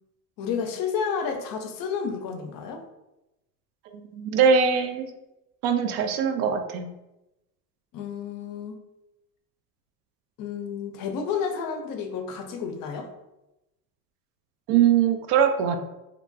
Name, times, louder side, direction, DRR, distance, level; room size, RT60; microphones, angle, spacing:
voice 1, 0.4-2.8 7.9-8.8 10.4-13.1, left 6 dB, 45° left, 5 dB, 0.5 m, -31 dB
voice 2, 3.9-5.1 5.6-6.9 14.7-15.8, right 7 dB, 60° right, 7 dB, 0.5 m, -22 dB
2.9 x 2.1 x 2.6 m, 0.94 s
hypercardioid pair, 75°, 48 cm